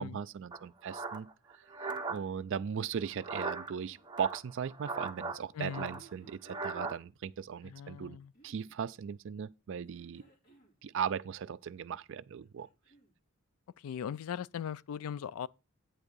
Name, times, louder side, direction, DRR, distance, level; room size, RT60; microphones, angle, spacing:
voice 1, 0.0-1.6 2.1-8.2 8.4-10.2 10.8-12.7, right 7 dB, 60° right, 0.4 m, -38 dB
sound 1, 0.5-2.2 3.1-3.7 4.1-5.4 5.7-7.0, right 3 dB, 20° right, 0.7 m, -38 dB
sound 2, 3.6-4.1 5.6-7.0 8.1-8.8 9.8-10.8 12.2-13.2 14.3-14.4, right 4 dB, 50° left, 2.2 m, -61 dB
voice 2, 5.5-6.0 7.6-8.3 13.8-15.5, left 8 dB, 80° left, 0.3 m, -39 dB
8.8 x 3.6 x 6.8 m
head